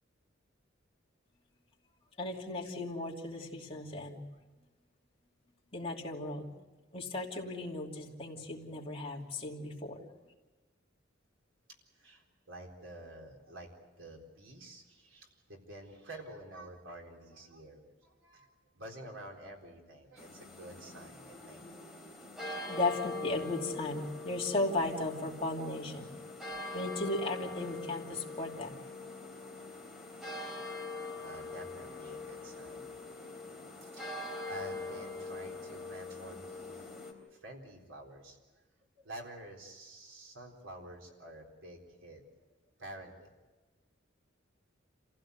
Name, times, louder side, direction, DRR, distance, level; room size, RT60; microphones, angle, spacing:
voice 1, 2.2-4.2 5.7-6.5 6.9-10.0 22.7-26.2 26.7-28.7, left 2 dB, 30° left, -1 dB, 2.8 m, -36 dB
voice 2, 11.9-21.6 30.7-33.1 33.5-36.9 37.3-38.4 39.0-42.5 42.8-43.3, right 1 dB, 75° right, 1 dB, 4.0 m, -49 dB
sound 1, 20.2-37.1, left 3 dB, ahead, 3.5 m, -43 dB
27.5 x 16.0 x 8.1 m, 1.3 s
head